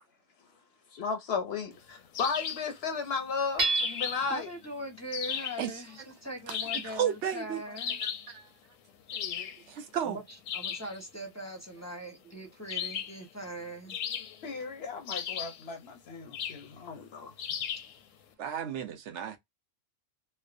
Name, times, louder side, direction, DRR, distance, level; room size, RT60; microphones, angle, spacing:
voice 1, 0.9-4.5 9.1-9.5 14.4-17.3, left 5 dB, 65° left, 0.7 m, -35 dB
sound 1, 2.1-2.7 3.8-4.4 5.1-5.6 6.5-7.0 7.8-8.3 9.1-9.6 10.5-10.9 12.7-13.2 13.9-14.6 15.1-15.6 16.3-16.7 17.4-17.9, left 8 dB, 85° left, 1.0 m, -36 dB
Hammer / Chink clink, 3.6-4.4, right 3 dB, 40° right, 0.7 m, -29 dB
voice 2, 4.0-8.0 10.0-10.2 10.5-14.0, equal, 15° left, 0.6 m, -41 dB
voice 3, 6.5-7.8 8.0-8.5 9.7-10.2 18.4-19.4, right 9 dB, 70° right, 0.9 m, -34 dB
3.1 x 2.0 x 2.4 m
omnidirectional pair, 1.3 m